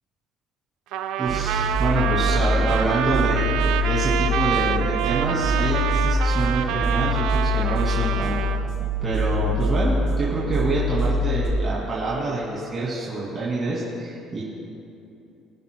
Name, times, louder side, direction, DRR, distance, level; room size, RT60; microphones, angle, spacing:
Trumpet, 0.9-8.6, right 10 dB, 85° right, 0.5 m, -27 dB
voice 1, 1.2-3.6 3.8-8.5 9.0-14.4, right 2 dB, 30° right, -7 dB, 2.4 m, -26 dB
sound 1, 1.2-11.5, left 1 dB, 70° right, 2.3 m, -24 dB
22.0 x 11.0 x 2.2 m, 2.7 s
cardioid pair, 125°, 0 cm